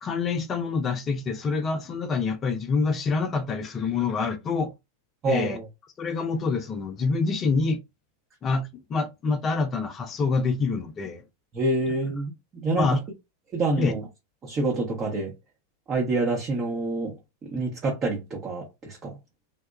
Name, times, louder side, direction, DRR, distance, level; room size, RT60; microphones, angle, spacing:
voice 1, 0.0-4.7 5.3-5.6 6.0-7.8 8.4-11.2 12.8-13.0 13.8-14.0, left 4 dB, 25° left, 0.4 m, -26 dB
voice 2, 5.2-5.7 11.5-12.9 13.5-14.0 14.4-15.3 15.9-17.1 17.4-19.2, right 2 dB, 25° right, 0.7 m, -27 dB
2.8 x 2.1 x 2.4 m
figure-of-eight pair, 90°, 0 cm